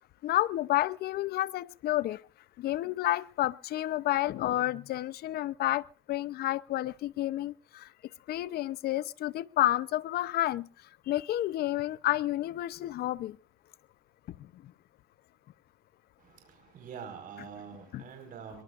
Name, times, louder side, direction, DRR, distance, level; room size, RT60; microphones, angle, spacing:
voice 1, 0.2-2.2 2.6-7.9 8.3-10.7 11.1-13.4 14.4-14.7 17.9-18.0, left 14 dB, 70° left, 0.7 m, -30 dB
voice 2, 16.2-18.6, right 7 dB, 55° right, 5.1 m, -45 dB
23.5 x 23.0 x 2.5 m
cardioid pair, 110°, 17 cm